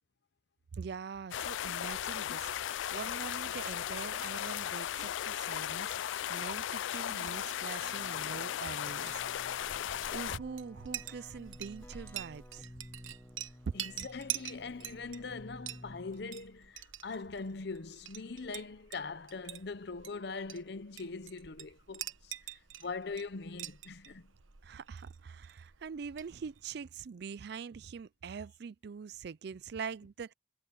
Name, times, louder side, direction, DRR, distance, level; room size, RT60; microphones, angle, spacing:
voice 1, 0.7-9.8 10.1-12.7 24.6-30.3, right 6 dB, 55° right, 0.4 m, -44 dB
sound 1, 1.3-10.4, left 11 dB, 70° left, 0.3 m, -36 dB
Keyboard (musical), 7.8-16.5, left 1 dB, 10° left, 0.8 m, -54 dB
Chink clink, 9.0-26.7, right 11 dB, 80° right, 1.1 m, -46 dB
voice 2, 13.7-24.3, left 4 dB, 55° left, 0.7 m, -42 dB
head